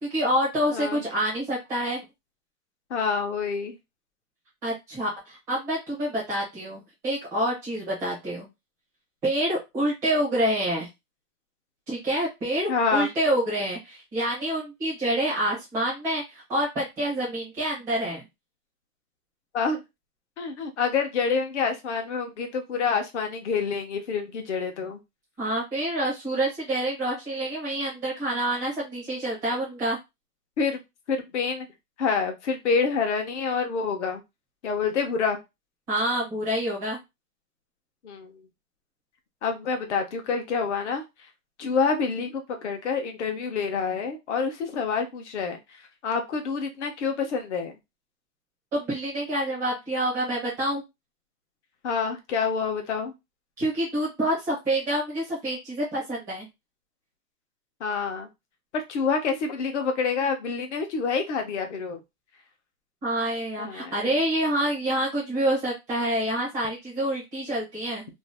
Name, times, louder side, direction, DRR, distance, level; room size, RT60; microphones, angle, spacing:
voice 1, 0.0-2.0 4.6-8.5 9.2-10.9 11.9-18.2 25.4-30.0 35.9-37.0 48.7-50.8 53.6-56.5 63.0-68.1, right 1 dB, 5° right, -6 dB, 0.5 m, -27 dB
voice 2, 2.9-3.8 12.7-13.1 19.5-19.8 20.4-25.0 30.6-30.8 31.1-31.7 32.0-34.2 34.6-35.4 38.0-38.3 39.4-41.0 41.6-45.6 46.0-47.7 51.8-53.1 57.8-58.3 58.7-62.0 63.6-64.1, left 5 dB, 45° left, 5 dB, 0.7 m, -27 dB
2.6 x 2.0 x 3.3 m, 0.22 s
hypercardioid pair, 160°, 47 cm